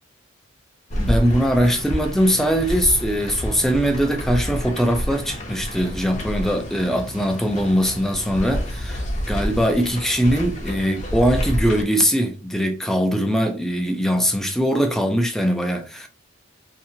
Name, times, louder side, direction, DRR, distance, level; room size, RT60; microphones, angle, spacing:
sound 1, 0.9-11.8, equal, 35° left, 0.7 m, -29 dB
voice 1, 0.9-16.1, equal, ahead, 0.4 m, -21 dB
2.8 x 2.6 x 2.6 m
head